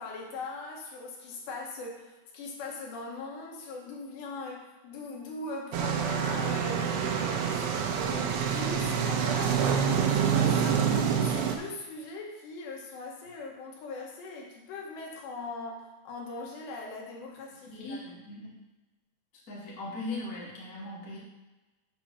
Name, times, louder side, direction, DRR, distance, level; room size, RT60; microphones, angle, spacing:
voice 1, 0.0-11.0 11.3-18.0, left 3 dB, 75° left, -1 dB, 3.3 m, -40 dB
sound 1, 5.7-11.6, right 7 dB, 85° right, 2.9 m, -27 dB
voice 2, 17.7-18.5 19.5-21.2, left 2 dB, 35° left, -6 dB, 1.5 m, -39 dB
7.6 x 4.1 x 6.3 m, 1.1 s
omnidirectional pair, 5.0 m